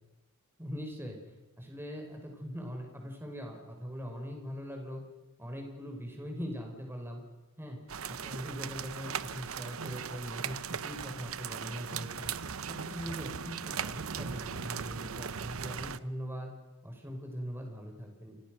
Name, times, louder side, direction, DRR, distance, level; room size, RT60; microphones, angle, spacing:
voice 1, 0.6-1.2 1.6-5.0 5.4-7.2 7.6-7.8 8.1-12.3 12.6-16.5 16.8-18.4, equal, 10° right, 2 dB, 5.4 m, -41 dB
sound 1, 7.9-16.0, right 7 dB, 70° right, 0.9 m, -38 dB
29.5 x 25.5 x 6.5 m, 1.1 s
head